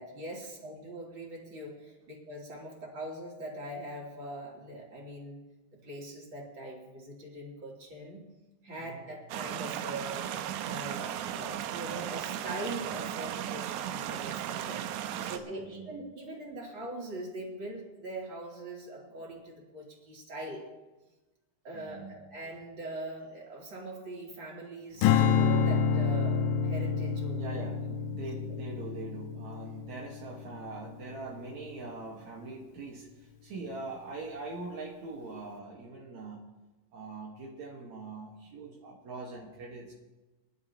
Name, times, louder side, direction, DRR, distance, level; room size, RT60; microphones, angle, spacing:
voice 1, 0.0-5.4 5.8-8.2 8.6-10.3 10.6-14.9 15.2-20.6 21.6-27.6, right 1 dB, 30° right, -3 dB, 3.1 m, -42 dB
sound 1, 9.3-15.4, right 11 dB, 85° right, 2.5 m, -36 dB
voice 2, 15.1-15.9 21.7-22.2 27.3-36.5 36.9-39.9, right 3 dB, 65° right, -3 dB, 1.8 m, -43 dB
Strum, 25.0-31.4, left 6 dB, 85° left, 3.2 m, -28 dB
24.5 x 11.5 x 2.9 m, 1.1 s
omnidirectional pair, 5.6 m